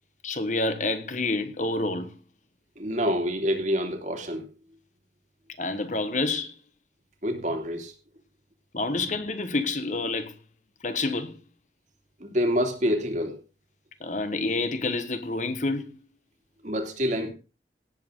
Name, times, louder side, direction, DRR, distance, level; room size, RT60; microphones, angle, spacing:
voice 1, 0.2-2.1 5.6-6.5 8.7-10.3 10.8-11.4 14.0-15.9, left 2 dB, 45° left, 1.4 m, -28 dB
voice 2, 2.8-4.4 7.2-7.9 9.0-9.1 12.2-13.4 16.6-17.3, equal, 45° right, 2.6 m, -27 dB
17.5 x 7.8 x 3.8 m
head